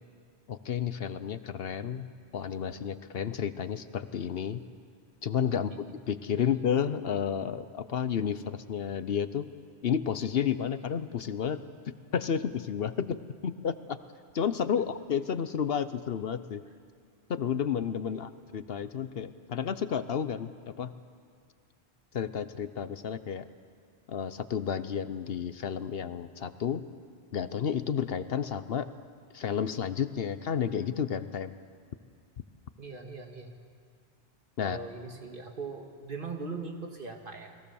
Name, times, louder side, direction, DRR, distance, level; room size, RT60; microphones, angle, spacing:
voice 1, 0.5-2.1 2.3-4.6 5.2-9.5 9.8-11.6 11.9-14.0 14.3-16.6 17.3-20.9 22.1-23.5 24.1-26.8 27.3-28.9 29.3-31.5 34.6-34.8, left 8 dB, 65° left, 13 dB, 1.0 m, -31 dB
voice 2, 32.8-33.5 34.6-37.6, right 4 dB, 50° right, 3 dB, 2.2 m, -40 dB
30.0 x 20.0 x 7.0 m, 2.1 s
omnidirectional pair, 1.1 m